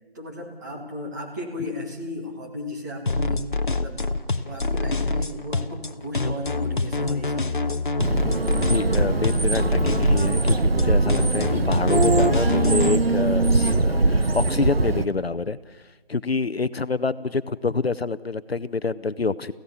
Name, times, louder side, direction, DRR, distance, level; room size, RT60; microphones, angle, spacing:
voice 1, 0.1-4.0 4.4-7.8, left 1 dB, 15° right, -1 dB, 2.2 m, -35 dB
sound 1, 3.1-12.9, left 3 dB, 50° left, 1.0 m, -26 dB
sound 2, 8.0-15.0, right 2 dB, 65° right, 1.3 m, -21 dB
voice 2, 8.6-15.8 16.1-19.5, left 4 dB, 75° left, 16 dB, 0.9 m, -27 dB
24.0 x 16.0 x 7.0 m, 1.2 s
figure-of-eight pair, 165°, 31 cm